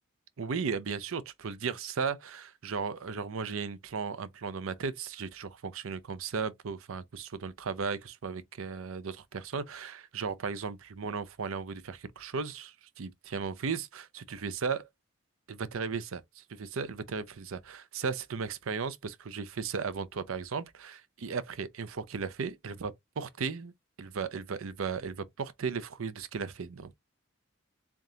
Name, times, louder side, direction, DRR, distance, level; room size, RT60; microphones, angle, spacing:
voice 1, 0.4-14.9 15.5-23.7 24.0-27.0, right 5 dB, 75° right, 0.5 m, -36 dB
3.7 x 3.5 x 2.7 m
head